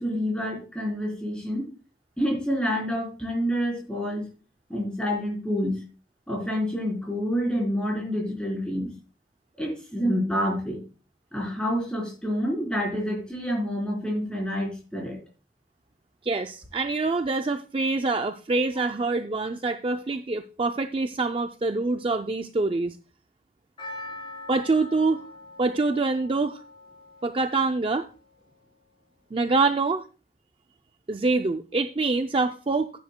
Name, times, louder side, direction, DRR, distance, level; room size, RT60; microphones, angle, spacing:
voice 1, 0.0-1.7 2.2-4.2 4.7-5.8 6.3-8.9 9.6-10.8 11.3-15.2, equal, 5° left, -2 dB, 3.8 m, -28 dB
voice 2, 16.2-23.0 24.5-25.2 25.6-26.6 27.2-28.1 29.3-30.0 31.1-32.9, right 3 dB, 30° right, 7 dB, 0.4 m, -25 dB
Percussion, 23.8-28.1 28.4-28.5, left 2 dB, 30° left, 3.9 m, -43 dB
14.5 x 9.4 x 2.2 m, 0.36 s
head